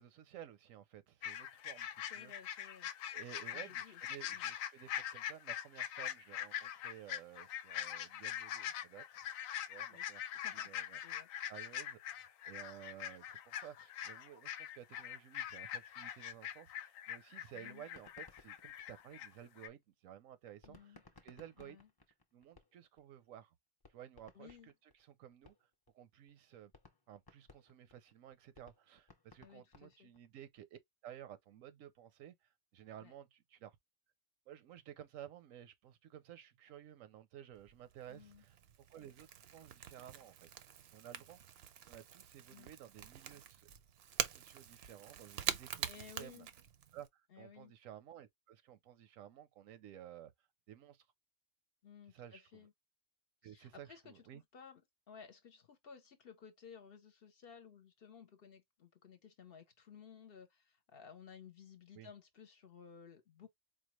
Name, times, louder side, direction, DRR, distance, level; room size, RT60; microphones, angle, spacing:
voice 1, 0.0-2.6 3.1-9.3 9.7-11.0 11.5-21.8 22.3-23.5 23.9-25.7 25.9-26.7 27.1-33.8 34.5-38.6 38.9-40.5 40.9-41.6 41.9-43.7 44.3-46.5 46.9-50.3 50.7-51.1 52.1-52.7 53.4-54.4 61.9-62.1, right 11 dB, 85° right, 1.0 m, -55 dB
sound 1, 1.2-19.3 19.6-19.7, left 10 dB, 90° left, 1.0 m, -43 dB
voice 2, 2.1-2.9 3.5-4.0 4.3-4.5 9.9-11.3 17.5-17.8 20.6-21.0 21.6-21.9 24.3-24.7 29.4-30.1 33.0-33.1 38.1-38.4 42.5-42.7 45.8-46.5 47.3-47.7 51.8-52.7 53.4-54.8 55.1-63.5, left 7 dB, 55° left, 0.8 m, -57 dB
sound 2, 17.9-19.6 20.6-23.0 23.4-23.5 23.8-25.9 26.3-26.4 26.7-30.3, left 3 dB, 25° left, 0.5 m, -62 dB
Crackle / Crack, 37.5-47.1, right 8 dB, 65° right, 0.7 m, -45 dB
4.4 x 2.2 x 3.0 m
omnidirectional pair, 1.4 m